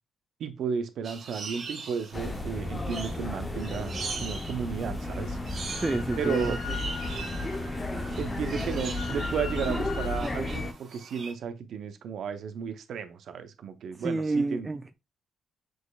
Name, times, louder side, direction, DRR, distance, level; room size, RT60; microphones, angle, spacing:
voice 1, 0.4-3.9 4.2-5.4 6.2-6.6 8.2-14.7, right 6 dB, 65° right, 0.6 m, -33 dB
sound 1, 1.0-11.3, right 4 dB, 50° right, 1.3 m, -42 dB
sound 2, 2.1-10.7, left 2 dB, 20° left, 0.6 m, -34 dB
Drill, 5.0-10.2, left 4 dB, 45° left, 1.3 m, -40 dB
voice 2, 5.8-6.6 14.0-14.9, right 2 dB, 20° right, 0.3 m, -28 dB
6.2 x 3.0 x 2.3 m
cardioid pair, 90°, 0 cm